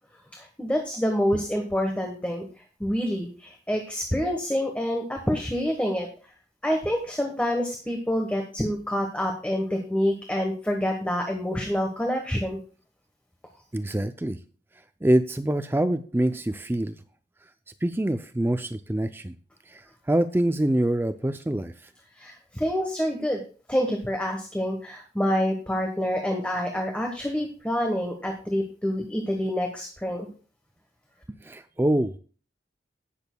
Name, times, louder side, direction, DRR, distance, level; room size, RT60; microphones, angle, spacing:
voice 1, 0.4-6.1 6.6-12.6 22.2-23.4 23.7-30.3, equal, 5° left, 2 dB, 1.1 m, -27 dB
voice 2, 13.7-14.4 15.0-17.0 17.8-19.4 19.7-21.7 29.0-29.1 31.4-32.2, right 1 dB, 10° right, 10 dB, 0.4 m, -25 dB
18.5 x 7.1 x 2.2 m, 0.39 s
head